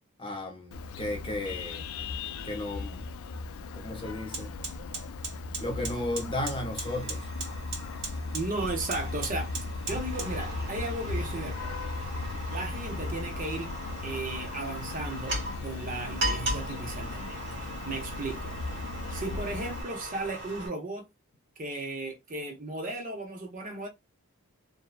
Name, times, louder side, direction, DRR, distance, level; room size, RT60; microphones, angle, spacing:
voice 1, 0.2-1.8 2.4-3.0 3.7-4.5 5.6-7.3, left 1 dB, 25° left, 0.6 m, -34 dB
Vehicle horn car horn honking, 0.7-19.8, left 3 dB, 70° left, 0.3 m, -37 dB
Fire, 3.2-3.3 3.7-20.7, right 1 dB, 55° right, 1.4 m, -38 dB
voice 2, 8.3-9.5 9.9-11.7 12.5-13.8 14.0-18.6 19.1-21.1 21.6-23.9, right 2 dB, 35° right, 0.7 m, -35 dB
2.6 x 2.1 x 2.2 m
head